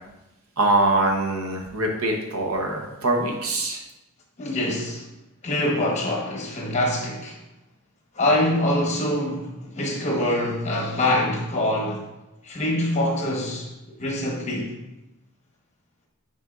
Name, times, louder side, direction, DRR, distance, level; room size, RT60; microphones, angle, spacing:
voice 1, 0.6-3.8, right 2 dB, 75° right, 1.0 m, -23 dB
voice 2, 4.4-5.0 5.4-7.3 8.1-12.0 12.4-14.7, left 1 dB, 30° left, 1.1 m, -24 dB
9.0 x 4.4 x 2.4 m
head